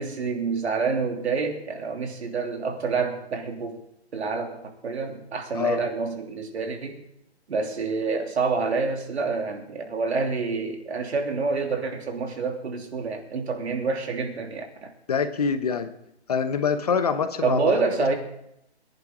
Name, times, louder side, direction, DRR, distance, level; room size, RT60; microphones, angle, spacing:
voice 1, 0.0-3.8 4.1-7.0 7.5-14.9 17.4-18.1, right 4 dB, 75° right, 3 dB, 3.1 m, -27 dB
voice 2, 15.1-15.9 16.3-17.6, left 6 dB, 35° left, 10 dB, 0.9 m, -25 dB
22.5 x 10.5 x 3.9 m, 0.78 s
hypercardioid pair, 175°, 33 cm